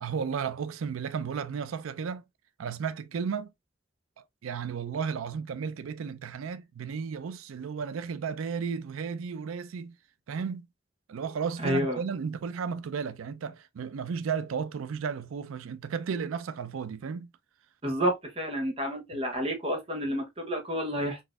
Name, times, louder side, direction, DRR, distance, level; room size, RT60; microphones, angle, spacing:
voice 1, 0.0-2.2 2.6-3.5 4.4-10.0 10.3-10.7 11.1-17.3, right 6 dB, 90° right, 0.4 m, -34 dB
voice 2, 11.6-12.0 17.8-21.2, equal, 30° right, 0.8 m, -30 dB
4.0 x 2.6 x 2.3 m
head